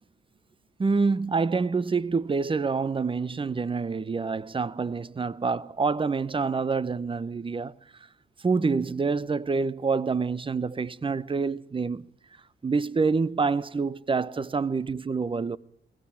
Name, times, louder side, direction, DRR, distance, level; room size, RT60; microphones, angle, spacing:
voice 1, 0.8-7.7 8.4-12.1 12.6-15.6, right 4 dB, 25° right, 0.9 m, -27 dB
21.5 x 18.5 x 8.6 m
cardioid pair, 85°, 20 cm